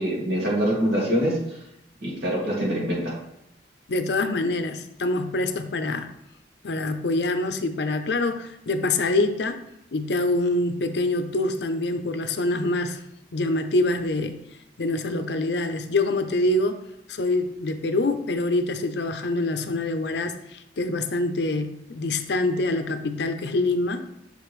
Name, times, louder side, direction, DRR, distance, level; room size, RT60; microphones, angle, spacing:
voice 1, 0.0-1.4 2.0-3.1, equal, 60° right, -4 dB, 2.4 m, -24 dB
voice 2, 3.9-6.1 6.6-9.6 9.9-13.0 13.3-14.4 14.8-16.8 17.1-24.1, left 2 dB, 65° left, 8 dB, 0.6 m, -25 dB
6.6 x 4.9 x 3.2 m, 0.82 s
head